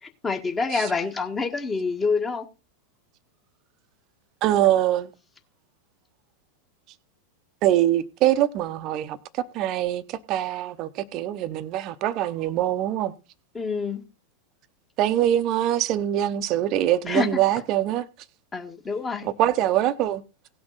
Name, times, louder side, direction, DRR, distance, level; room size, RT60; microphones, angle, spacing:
voice 1, 0.0-2.5 13.5-14.0 17.1-17.4 18.5-19.3, left 4 dB, 15° left, 1.5 m, -27 dB
voice 2, 4.4-5.1 7.6-13.1 15.0-18.0 19.2-20.2, right 12 dB, 40° right, 0.8 m, -23 dB
17.5 x 6.1 x 4.0 m
figure-of-eight pair, 90°, 0 cm